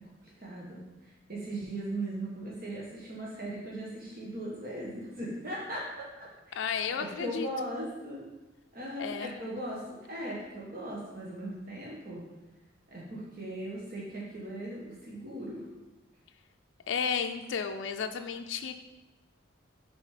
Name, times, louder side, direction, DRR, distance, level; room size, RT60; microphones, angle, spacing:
voice 1, 0.0-6.6 7.0-8.3 8.7-12.2 12.9-15.6, right 1 dB, 50° right, -5 dB, 1.3 m, -38 dB
voice 2, 6.5-7.5 9.0-9.3 16.9-18.8, left 6 dB, 75° left, 6 dB, 0.4 m, -33 dB
6.3 x 4.1 x 5.0 m, 1.1 s
head